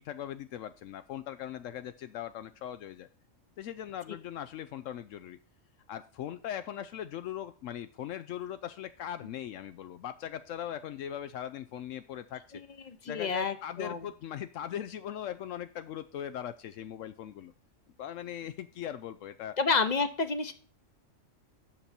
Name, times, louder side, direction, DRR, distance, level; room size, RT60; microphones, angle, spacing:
voice 1, 0.0-3.1 3.6-5.4 5.9-12.6 13.1-17.5 18.0-19.6, left 10 dB, 80° left, 11 dB, 0.9 m, -40 dB
voice 2, 12.9-14.1 19.6-20.5, left 4 dB, 40° left, 10 dB, 0.8 m, -29 dB
8.9 x 6.8 x 4.3 m, 0.40 s
omnidirectional pair, 1.3 m